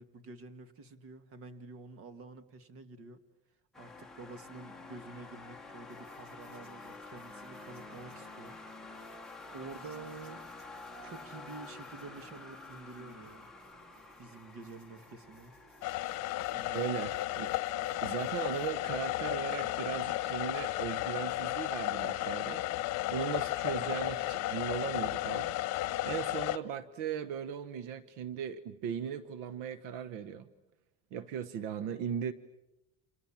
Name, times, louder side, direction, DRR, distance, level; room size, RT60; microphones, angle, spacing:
voice 1, 0.0-3.2 3.8-9.0 9.5-10.5 11.0-13.5 14.2-15.6 16.5-16.8, right 3 dB, 45° right, 11 dB, 2.1 m, -49 dB
sound 1, 3.7-18.6, left 3 dB, ahead, 1.4 m, -50 dB
sound 2, 5.9-19.2, right 3 dB, 60° right, 6.2 m, -63 dB
sound 3, 15.8-26.6, left 16 dB, 55° left, 1.1 m, -34 dB
voice 2, 16.7-17.5 18.0-22.6 23.1-25.5 26.0-30.5 31.1-32.3, right 8 dB, 80° right, 14 dB, 1.3 m, -38 dB
29.5 x 28.0 x 7.4 m, 0.93 s
cardioid pair, 165°, 31 cm